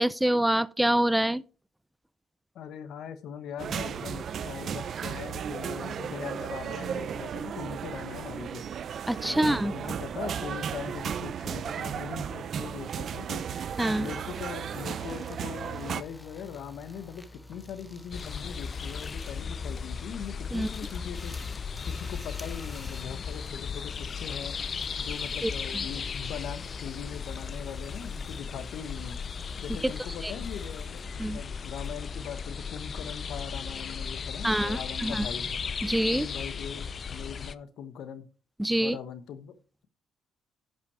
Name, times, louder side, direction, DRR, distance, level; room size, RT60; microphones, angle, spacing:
voice 1, 0.0-1.4 9.1-9.7 13.8-14.1 20.5-20.7 25.4-25.9 29.8-29.9 30.2-30.3 31.2-31.4 34.4-35.3 35.8-36.3 38.6-39.0, right 1 dB, 5° right, 0.5 m, -26 dB
voice 2, 2.5-8.6 9.3-13.4 14.0-21.3 21.9-24.6 25.0-29.2 29.6-35.4 36.1-38.3 38.8-39.6, left 8 dB, 75° left, 1.3 m, -40 dB
sound 1, 3.6-16.0, right 8 dB, 60° right, 0.6 m, -35 dB
sound 2, 13.5-32.5, left 1 dB, 10° left, 1.0 m, -50 dB
sound 3, 18.1-37.5, left 6 dB, 45° left, 0.5 m, -36 dB
10.5 x 5.8 x 4.8 m
cardioid pair, 90°, 0 cm